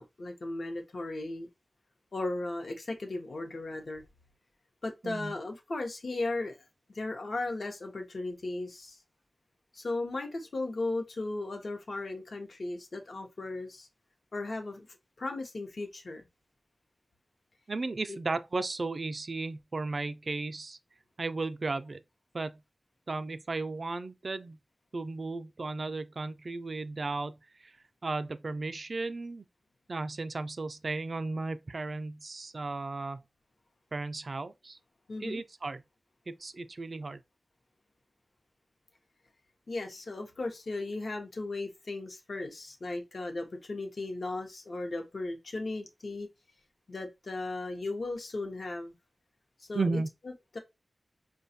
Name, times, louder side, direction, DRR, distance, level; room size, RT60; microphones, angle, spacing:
voice 1, 0.0-1.5 2.1-4.0 4.8-6.6 6.9-9.0 9.7-13.9 14.3-16.2 35.1-35.4 39.7-46.3 46.9-48.9 49.6-50.0, left 2 dB, 65° left, 0.7 m, -36 dB
voice 2, 5.0-5.4 17.7-20.8 21.2-22.0 22.3-22.6 23.1-24.6 24.9-27.7 28.0-29.5 29.9-33.2 33.9-34.8 35.2-35.8 36.3-37.2 49.7-50.1, right 3 dB, 55° right, 0.4 m, -35 dB
4.9 x 2.2 x 2.7 m
wide cardioid pair, 95°, 0 cm